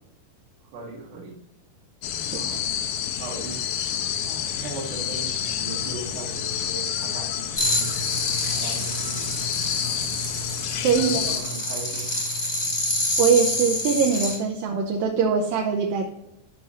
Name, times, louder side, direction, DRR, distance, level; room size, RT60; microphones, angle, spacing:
voice 1, 0.7-1.4 2.2-2.6 3.2-3.8 4.2-8.2 8.4-10.0 10.8-12.1, right 3 dB, 55° right, -2 dB, 1.5 m, -39 dB
sound 1, 2.0-11.4, left 9 dB, 80° left, 2.1 m, -29 dB
sound 2, 7.6-14.4, left 1 dB, 30° left, 1.2 m, -28 dB
voice 2, 10.8-11.2 13.2-16.0, right 6 dB, 85° right, 0 dB, 2.0 m, -22 dB
11.0 x 5.6 x 3.1 m, 0.88 s
omnidirectional pair, 5.0 m